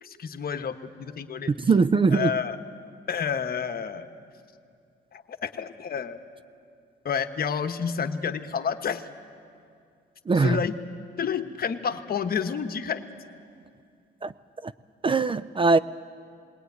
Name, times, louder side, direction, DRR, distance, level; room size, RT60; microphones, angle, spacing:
voice 1, 0.0-1.5 2.1-2.6 3.1-4.1 5.1-6.2 7.0-9.1 10.3-10.8 11.2-13.0, left 7 dB, 50° left, 8 dB, 1.1 m, -29 dB
voice 2, 1.6-2.3 10.3-10.6 14.2-14.3 14.6-14.7 15.0-15.8, right 4 dB, 25° right, 14 dB, 0.5 m, -21 dB
20.0 x 18.5 x 9.5 m, 2.4 s
cardioid pair, 90°, 20 cm